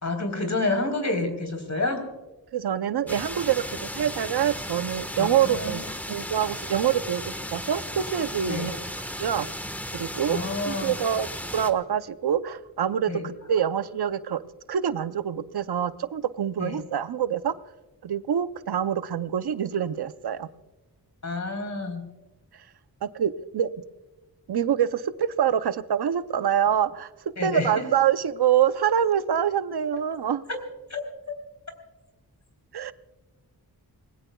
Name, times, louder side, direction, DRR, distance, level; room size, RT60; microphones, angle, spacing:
voice 1, 0.0-2.1 5.2-5.8 8.5-8.7 10.3-11.0 13.1-13.3 16.6-16.8 21.2-22.1 27.4-27.7 30.9-31.0, left 2 dB, 45° left, 4 dB, 3.8 m, -29 dB
voice 2, 2.5-3.6 3.9-8.8 9.2-9.5 9.9-10.4 10.6-14.4 14.7-17.5 18.0-20.5 23.0-23.7 24.5-27.1 27.4-30.4 32.7-32.9, right 9 dB, 75° right, 13 dB, 0.7 m, -25 dB
sound 1, 3.1-11.7, equal, 5° left, 1.3 m, -35 dB
26.0 x 20.5 x 2.3 m, 1.1 s
wide cardioid pair, 80°, 39 cm